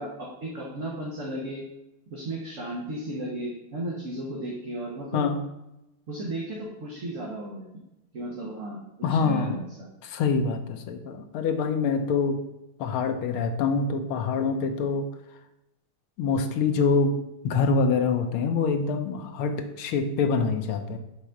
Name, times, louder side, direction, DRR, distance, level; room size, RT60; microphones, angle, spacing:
voice 1, 0.0-1.6 2.1-5.2 6.1-7.8 8.1-9.6, right 1 dB, 40° right, -4 dB, 1.4 m, -34 dB
voice 2, 9.0-9.6 10.0-12.4 12.8-15.1 16.2-17.1 17.4-21.0, left 4 dB, 80° left, 6 dB, 1.6 m, -25 dB
6.5 x 4.1 x 5.7 m, 0.91 s
omnidirectional pair, 2.3 m